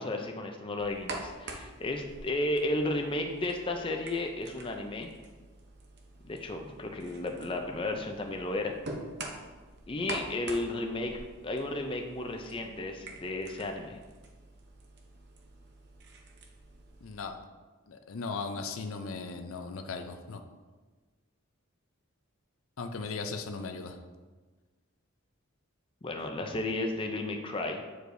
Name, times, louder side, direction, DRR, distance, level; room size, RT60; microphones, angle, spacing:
voice 1, 0.0-5.1 6.2-8.7 9.9-14.0 26.0-27.8, left 2 dB, 25° left, 3 dB, 0.5 m, -33 dB
sound 1, 0.8-17.3, right 2 dB, 55° right, 0.7 m, -46 dB
voice 2, 17.0-17.4 17.9-20.4 22.8-24.0, left 4 dB, 75° left, 6 dB, 0.5 m, -37 dB
8.3 x 4.7 x 2.6 m, 1.3 s
head